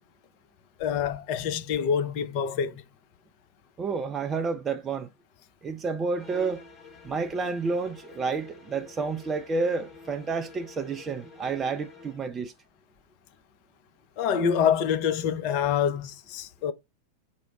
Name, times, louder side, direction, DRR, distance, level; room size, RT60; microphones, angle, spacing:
voice 1, 0.8-2.8 14.2-16.7, left 8 dB, 45° left, 0.5 m, -26 dB
voice 2, 3.8-5.1 5.6-6.6 7.0-12.5, right 4 dB, 20° right, 0.4 m, -30 dB
sound 1, 6.1-12.3, left 4 dB, 30° left, 1.0 m, -48 dB
4.5 x 2.0 x 4.6 m
figure-of-eight pair, 90°, 0 cm